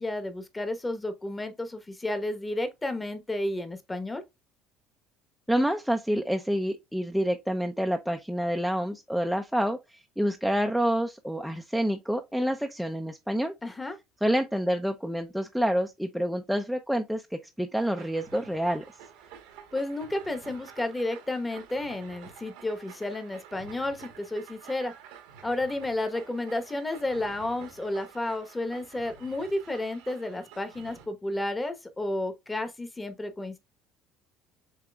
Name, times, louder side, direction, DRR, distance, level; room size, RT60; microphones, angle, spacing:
voice 1, 0.0-4.2 13.6-14.0 19.7-24.9 25.4-33.6, left 1 dB, 15° left, 1.1 m, -32 dB
voice 2, 5.5-13.5 14.2-18.8, equal, ahead, 0.5 m, -28 dB
sound 1, 17.7-31.1, right 8 dB, 85° right, 1.3 m, -49 dB
7.4 x 2.9 x 2.3 m
supercardioid pair, 85°, 0 cm